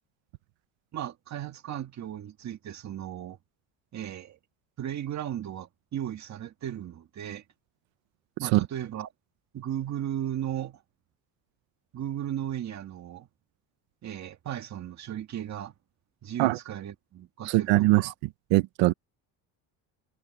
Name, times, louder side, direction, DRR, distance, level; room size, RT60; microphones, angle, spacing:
voice 1, 0.9-3.4 3.9-4.4 4.8-7.4 8.4-9.1 9.5-10.8 11.9-13.3 14.0-15.7 16.2-18.1, right 11 dB, 40° right, 1.9 m, -36 dB
voice 2, 17.4-18.1 18.5-18.9, right 19 dB, 80° right, 1.2 m, -22 dB
cardioid pair, 155°, 45 cm